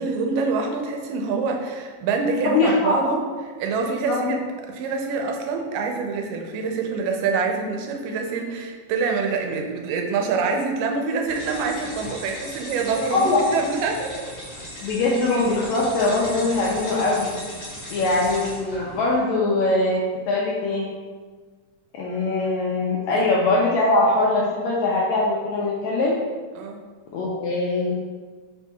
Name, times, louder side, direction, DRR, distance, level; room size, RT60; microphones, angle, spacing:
voice 1, 0.0-3.2 3.6-4.4 4.7-14.3 17.8-18.1 23.1-23.3 26.6-26.8, right 4 dB, 90° right, 2 dB, 2.2 m, -26 dB
voice 2, 2.5-3.0 4.1-4.3 13.1-13.5 14.8-17.3 17.9-20.0 20.3-20.9 21.9-26.1 27.1-27.9, left 2 dB, 80° left, -4 dB, 1.6 m, -22 dB
sound 1, 11.3-19.2, equal, 45° left, 1.0 m, -37 dB
5.1 x 2.3 x 4.3 m, 1.5 s
omnidirectional pair, 3.8 m